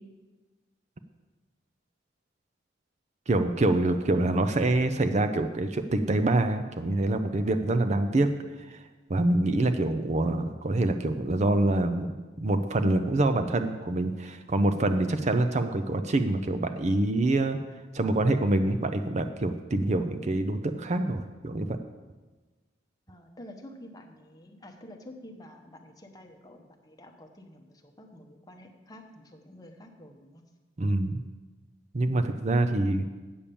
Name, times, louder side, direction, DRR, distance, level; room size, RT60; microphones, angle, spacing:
voice 1, 3.3-8.3 8.6-8.8 9.1-12.1 12.4-17.6 17.9-21.8 30.8-31.2 31.9-33.0, right 2 dB, 35° right, 9 dB, 0.5 m, -26 dB
voice 2, 23.1-27.6 28.0-30.4 32.1-32.4, left 1 dB, 20° left, 3 dB, 1.0 m, -49 dB
8.6 x 7.3 x 6.9 m, 1.3 s
head